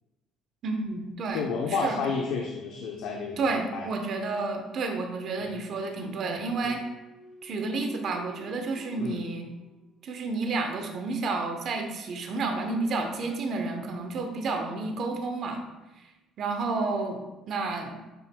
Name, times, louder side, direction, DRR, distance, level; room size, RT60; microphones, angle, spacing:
voice 1, 0.6-2.1 3.4-6.8 7.4-9.5 10.0-15.6 16.0-16.1 16.4-18.0, right 3 dB, 50° right, 4 dB, 0.8 m, -31 dB
voice 2, 1.3-3.9 5.4-5.6 6.6-6.7 9.0-9.2, left 4 dB, 80° left, 1 dB, 0.7 m, -31 dB
sound 1, 6.4-10.3, right 3 dB, 10° left, 1.0 m, -49 dB
9.1 x 4.7 x 2.2 m, 1.1 s
cardioid pair, 145°, 0 cm